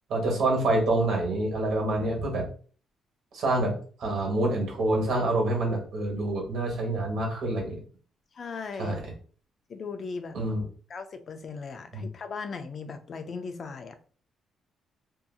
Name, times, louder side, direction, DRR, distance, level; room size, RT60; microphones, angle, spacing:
voice 1, 0.1-2.5 3.3-3.7 4.0-7.8 8.8-9.0 10.3-10.6 11.9-12.0, right 2 dB, 75° right, 0 dB, 1.2 m, -26 dB
voice 2, 8.3-9.0 9.7-10.4 10.9-14.0, left 5 dB, 50° left, 8 dB, 0.4 m, -37 dB
2.7 x 2.6 x 2.3 m, 0.42 s
cardioid pair, 90°, 0 cm